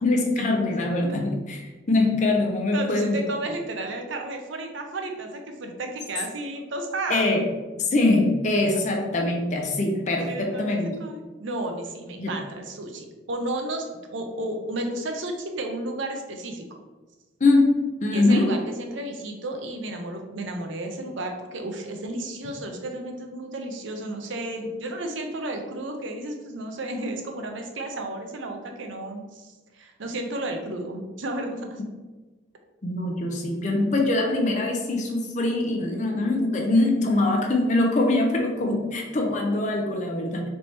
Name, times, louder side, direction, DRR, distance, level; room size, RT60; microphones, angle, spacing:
voice 1, 0.0-1.6 1.9-3.2 7.1-7.5 7.8-11.0 12.2-12.4 17.4-18.5 32.8-40.5, left 2 dB, 40° left, 1 dB, 0.5 m, -23 dB
voice 2, 2.7-7.3 10.3-16.6 18.1-31.8, right 1 dB, 75° right, 4 dB, 0.6 m, -33 dB
3.4 x 2.9 x 4.1 m, 1.2 s
head